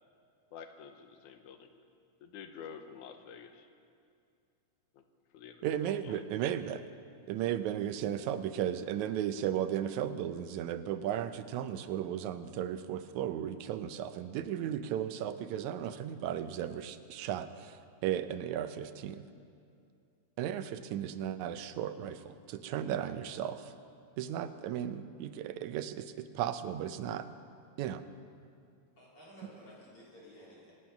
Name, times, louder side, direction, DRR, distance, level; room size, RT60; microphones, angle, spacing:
voice 1, 0.5-1.7 2.2-3.7 4.9-5.0 5.3-6.2, left 7 dB, 80° left, 6 dB, 2.4 m, -49 dB
voice 2, 5.6-6.8 7.3-19.2 20.4-23.7 24.2-27.3 27.8-28.0, right 10 dB, 75° right, 10 dB, 2.0 m, -35 dB
voice 3, 29.0-30.7, equal, 45° left, -7 dB, 4.7 m, -54 dB
24.5 x 9.1 x 5.8 m, 2.4 s
omnidirectional pair, 3.5 m